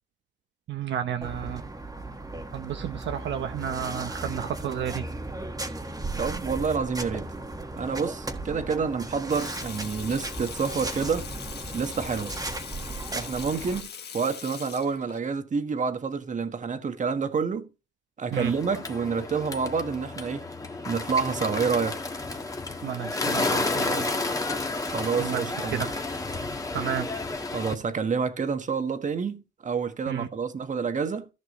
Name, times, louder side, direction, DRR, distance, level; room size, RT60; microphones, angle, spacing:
voice 1, 0.7-1.6 2.5-5.1 18.3-18.5 22.8-24.2 25.2-25.9 26.7-27.1 30.1-30.3, right 9 dB, 65° right, 0.8 m, -32 dB
sound 1, 1.2-13.8, right 2 dB, 20° right, 1.5 m, -36 dB
voice 2, 6.2-7.3 7.8-11.3 11.7-12.4 13.1-17.7 18.2-20.5 20.8-22.0 24.9-25.8 27.5-31.3, right 5 dB, 40° right, 1.4 m, -28 dB
Water tap faucet / Sink (filling or washing), 9.3-15.2, left 8 dB, 55° left, 1.5 m, -41 dB
Bird, 18.3-27.7, left 3 dB, 15° left, 1.5 m, -31 dB
14.5 x 6.1 x 3.1 m
cardioid pair, 90°, 20 cm